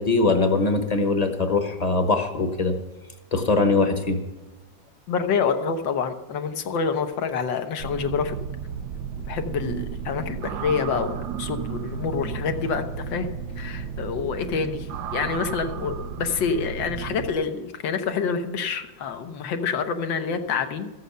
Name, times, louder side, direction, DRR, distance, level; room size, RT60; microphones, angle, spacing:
voice 1, 0.0-2.8 3.3-4.2, left 3 dB, 30° left, 6 dB, 0.8 m, -22 dB
voice 2, 5.1-8.4 9.3-14.9 15.1-20.9, left 6 dB, 85° left, 7 dB, 1.7 m, -27 dB
sound 1, 7.8-17.4, right 7 dB, 70° right, 1.1 m, -33 dB
14.0 x 7.9 x 6.8 m, 1.2 s
omnidirectional pair, 2.0 m